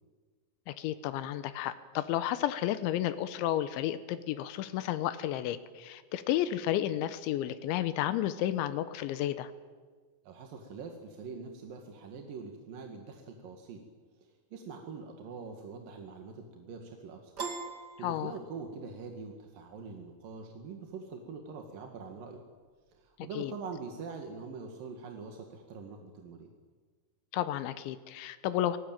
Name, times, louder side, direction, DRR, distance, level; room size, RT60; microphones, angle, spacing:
voice 1, 0.7-9.5 18.0-18.3 23.4-23.5 27.3-28.8, left 12 dB, 90° left, 12 dB, 3.3 m, -32 dB
voice 2, 10.2-13.8 14.2-17.3 17.7-22.4 22.9-26.5, right 5 dB, 55° right, 3 dB, 3.2 m, -44 dB
Piano, 17.4-18.9, right 4 dB, 40° right, 1.6 m, -40 dB
28.0 x 19.0 x 9.0 m, 1.5 s
omnidirectional pair, 5.2 m